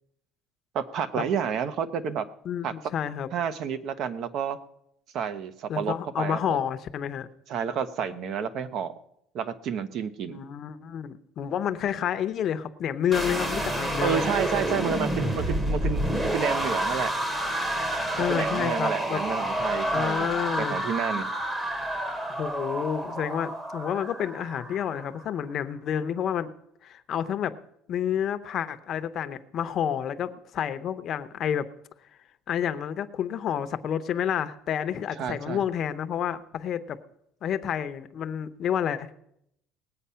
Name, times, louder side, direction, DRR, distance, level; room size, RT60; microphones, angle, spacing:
voice 1, 0.7-2.3 2.6-2.7 3.3-4.6 5.1-6.6 7.5-8.9 9.3-10.4 14.0-17.1 18.2-20.3 20.6-21.3 35.2-35.6, right 7 dB, 50° right, 12 dB, 0.9 m, -30 dB
voice 2, 2.4-3.3 5.7-7.3 10.3-14.3 18.2-19.2 19.9-20.8 22.4-26.5 26.8-27.5 27.9-31.7 32.5-37.0 37.4-39.1, left 9 dB, 45° left, 11 dB, 0.8 m, -29 dB
sound 1, 13.1-25.2, right 1 dB, 15° right, 1.2 m, -29 dB
19.0 x 8.4 x 5.7 m, 0.77 s
cardioid pair, 145°, 0 cm